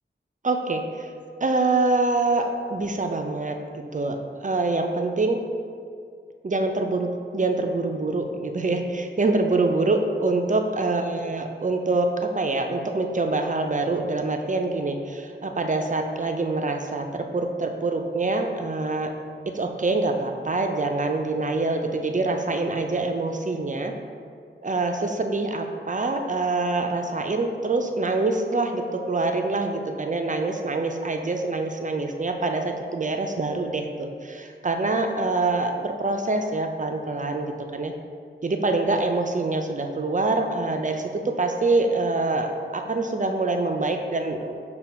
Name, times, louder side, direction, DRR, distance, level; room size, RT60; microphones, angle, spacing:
voice 1, 0.4-1.1 1.4-5.4 6.4-19.1 19.5-23.9 24.6-37.9 38.4-41.1 41.4-44.6, right 3 dB, 40° right, 4 dB, 0.4 m, -25 dB
5.5 x 2.2 x 4.2 m, 2.3 s
wide cardioid pair, 50°, 21 cm